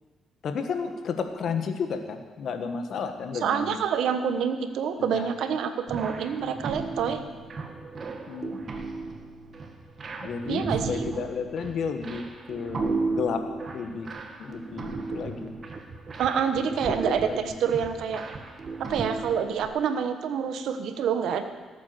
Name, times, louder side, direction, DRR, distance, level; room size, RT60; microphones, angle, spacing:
voice 1, 0.4-3.8 5.1-5.3 8.3-8.6 10.2-13.4 13.7-14.1 14.4-15.5 16.9-17.5, left 5 dB, 65° left, 7 dB, 1.6 m, -32 dB
voice 2, 3.4-7.2 10.5-11.0 16.2-18.2 18.8-21.4, right 7 dB, 75° right, 9 dB, 1.2 m, -27 dB
sound 1, 5.9-19.7, right 3 dB, 40° right, 1.8 m, -35 dB
17.5 x 8.5 x 6.9 m, 1.4 s
cardioid pair, 90°, 0 cm